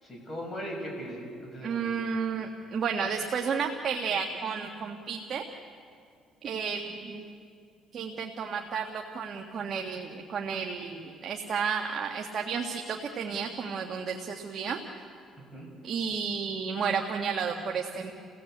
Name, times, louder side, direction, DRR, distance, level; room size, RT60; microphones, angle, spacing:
voice 1, 0.0-1.9 15.5-15.7, equal, 15° left, -1 dB, 7.2 m, -38 dB
voice 2, 1.6-5.4 6.4-7.3 7.9-14.8 15.8-18.1, right 6 dB, 50° right, 2 dB, 1.7 m, -32 dB
30.0 x 17.0 x 8.1 m, 2.2 s
cardioid pair, 105°, 0 cm